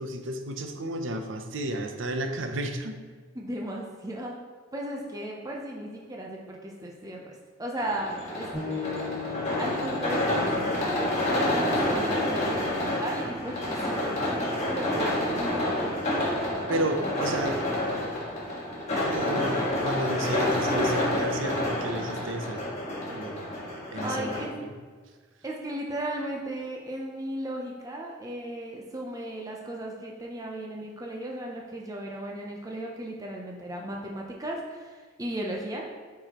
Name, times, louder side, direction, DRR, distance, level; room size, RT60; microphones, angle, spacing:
voice 1, 0.0-3.0 16.7-17.6 19.0-22.7 23.1-23.5 23.9-24.4 24.6-24.7, right 1 dB, 85° right, 6 dB, 0.7 m, -32 dB
voice 2, 3.3-4.4 4.7-8.9 9.2-15.9 16.8-17.1 24.0-24.5 25.4-35.8, right 1 dB, 20° right, -1 dB, 0.6 m, -36 dB
sound 1, 7.8-24.4, left 1 dB, 35° left, 1.7 m, -28 dB
sound 2, 8.5-18.2, left 6 dB, ahead, 1.9 m, -42 dB
8.9 x 4.7 x 3.0 m, 1.5 s
head